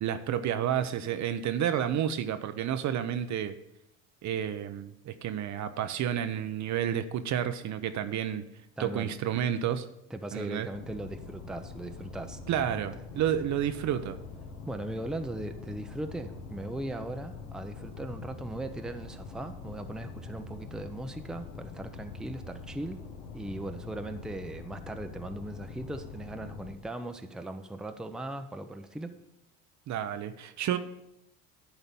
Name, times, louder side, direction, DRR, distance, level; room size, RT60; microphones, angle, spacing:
voice 1, 0.0-3.6 4.2-8.4 8.8-9.9 10.3-10.7 12.5-14.2 29.9-30.8, right 10 dB, 45° right, 10 dB, 0.7 m, -30 dB
voice 2, 8.8-9.1 10.1-12.9 14.7-23.0 23.3-29.1, right 1 dB, ahead, 7 dB, 0.7 m, -39 dB
sound 1, 10.7-26.7, left 4 dB, 75° left, 1.4 m, -44 dB
11.5 x 4.0 x 7.0 m, 0.82 s
hypercardioid pair, 75°, 40 cm